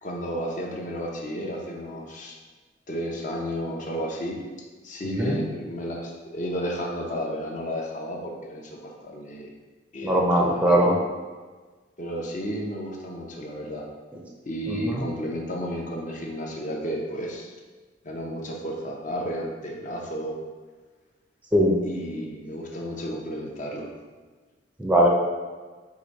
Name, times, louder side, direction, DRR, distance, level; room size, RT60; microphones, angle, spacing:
voice 1, 0.0-2.4 2.9-4.4 4.8-9.5 9.9-10.9 12.0-13.9 14.4-17.5 18.0-20.4 21.8-23.9, equal, 40° left, 0 dB, 0.6 m, -32 dB
voice 2, 10.0-10.9 14.7-15.0 21.5-21.7 24.8-25.1, equal, 10° right, -2 dB, 0.5 m, -20 dB
4.9 x 2.5 x 4.0 m, 1.4 s
head